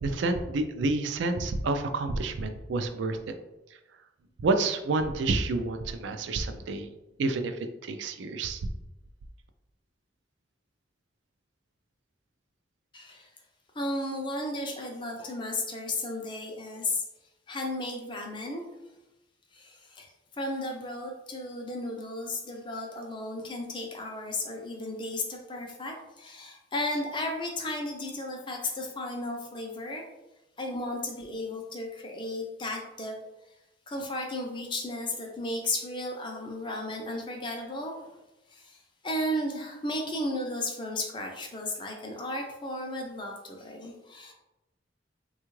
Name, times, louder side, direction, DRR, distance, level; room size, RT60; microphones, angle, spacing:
voice 1, 0.0-3.2 4.4-6.9 7.2-8.6, right 3 dB, 80° right, 8 dB, 0.4 m, -29 dB
voice 2, 12.9-13.3 13.7-17.0 17.5-18.6 19.5-20.1 20.4-30.1 30.6-33.1 33.9-38.2 38.5-38.8 39.0-44.3, left 1 dB, 25° left, 1 dB, 0.5 m, -34 dB
3.5 x 2.3 x 3.0 m, 0.98 s
head